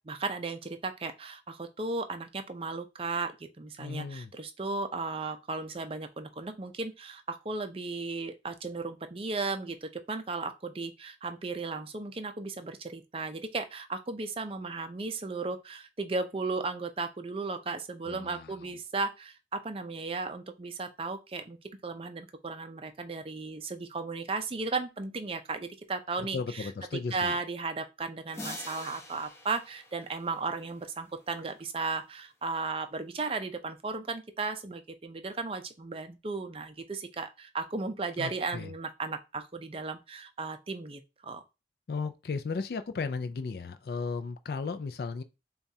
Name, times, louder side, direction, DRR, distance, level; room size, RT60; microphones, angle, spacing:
voice 1, 0.1-21.6 21.8-26.7 27.1-41.4, right 3 dB, 30° right, 0.5 m, -35 dB
voice 2, 3.8-4.3 18.1-18.6 26.3-27.4 38.2-38.7 41.9-45.2, left 4 dB, 60° left, 0.4 m, -35 dB
sound 1, 28.3-30.8, left 2 dB, 15° left, 0.7 m, -45 dB
7.0 x 2.4 x 2.7 m
head